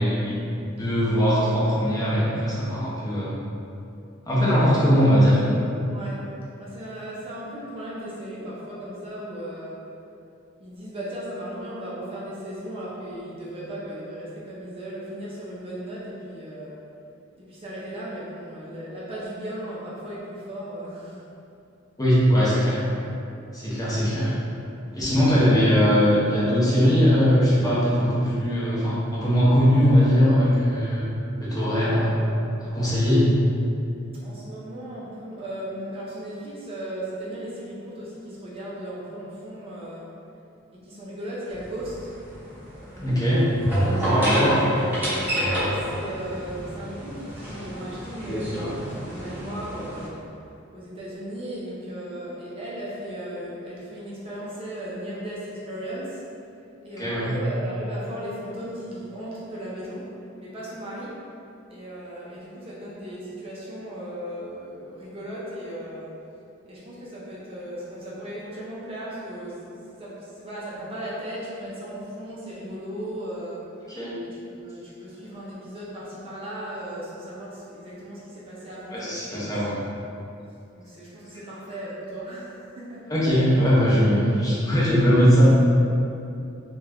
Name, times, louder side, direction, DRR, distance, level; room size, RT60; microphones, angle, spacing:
voice 1, 0.0-3.4 4.2-5.4 22.0-22.8 23.5-24.3 24.9-31.1 31.4-32.2 32.7-33.3 43.0-43.4 44.0-44.6 57.0-57.3 73.9-74.1 78.9-79.7 83.1-85.4, equal, 20° left, -8 dB, 0.6 m, -20 dB
voice 2, 5.9-6.2 6.6-9.8 10.6-16.8 17.4-21.2 31.7-32.5 34.2-40.1 40.8-41.9 42.8-43.4 44.0-44.5 45.1-50.2 50.7-56.2 56.8-60.1 60.4-61.1 61.7-66.1 66.7-73.9 74.2-79.8 80.8-83.0, right 1 dB, 30° right, -7 dB, 0.4 m, -36 dB
sound 1, 41.5-50.1, right 1 dB, 10° right, 0.8 m, -28 dB
2.4 x 2.2 x 3.3 m, 2.6 s
head